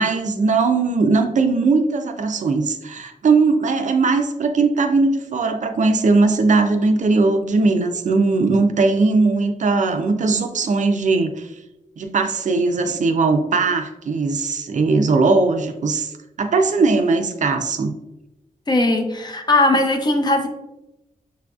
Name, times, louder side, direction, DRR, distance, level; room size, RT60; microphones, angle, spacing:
voice 1, 0.0-11.5 12.0-16.1 16.4-17.9, right 3 dB, 65° right, 6 dB, 0.4 m, -19 dB
voice 2, 18.7-20.5, left 2 dB, 30° left, 4 dB, 0.6 m, -18 dB
6.6 x 2.5 x 2.3 m, 0.94 s
wide cardioid pair, 105°, 14 cm